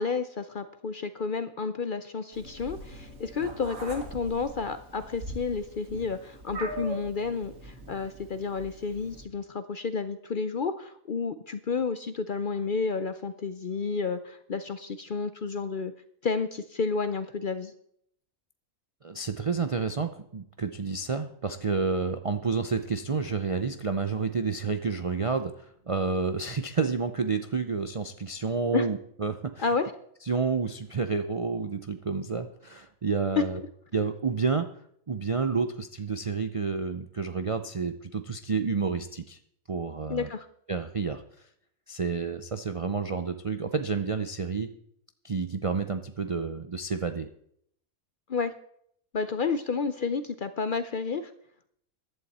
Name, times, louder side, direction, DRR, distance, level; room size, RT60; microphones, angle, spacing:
voice 1, 0.0-15.9 16.2-17.7 28.7-28.9 29.6-29.9 33.4-33.5 40.1-40.5 48.3-48.5 49.1-51.3, left 4 dB, 50° left, 11 dB, 0.6 m, -31 dB
Meow, 2.3-9.2, right 2 dB, 90° right, 2.5 m, -42 dB
voice 2, 19.0-29.7 30.3-33.6 33.9-34.7 35.1-39.4 39.7-40.3 40.7-41.2 41.9-44.7 45.2-47.3, right 4 dB, 45° right, 8 dB, 0.4 m, -30 dB
15.0 x 11.5 x 4.2 m, 0.68 s
omnidirectional pair, 1.4 m